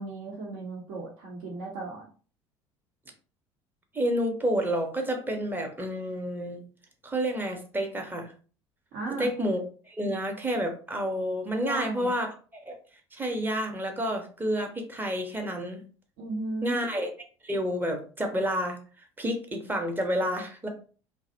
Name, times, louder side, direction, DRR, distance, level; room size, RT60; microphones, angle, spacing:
voice 1, 0.0-2.1 8.9-9.3 11.6-12.1 16.2-16.8, right 2 dB, 55° right, -3 dB, 0.7 m, -35 dB
voice 2, 3.9-6.6 7.0-8.3 9.2-12.8 13.1-15.8 16.6-17.1 17.4-18.8 19.2-20.7, equal, 15° right, 4 dB, 0.6 m, -29 dB
2.6 x 2.0 x 2.6 m, 0.39 s
figure-of-eight pair, 60°, 15 cm